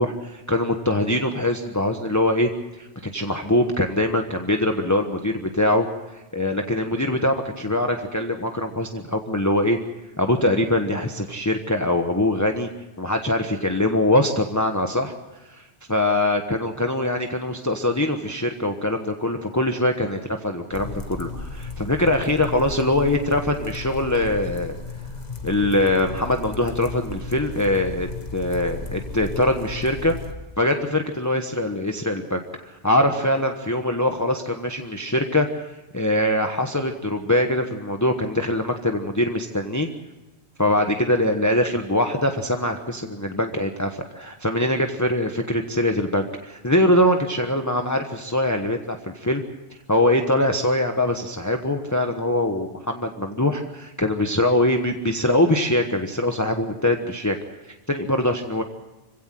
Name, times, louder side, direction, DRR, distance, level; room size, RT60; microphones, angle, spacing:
voice 1, 0.0-5.9 6.1-9.8 10.2-12.7 13.0-15.1 15.5-24.8 25.4-30.1 30.6-35.6 35.9-39.9 40.6-49.4 49.9-57.4 57.7-58.6, left 1 dB, 15° left, 4 dB, 1.2 m, -23 dB
sound 1, 20.7-30.3, left 4 dB, 40° left, 1.7 m, -35 dB
26.0 x 16.5 x 7.6 m, 1.1 s
omnidirectional pair, 1.1 m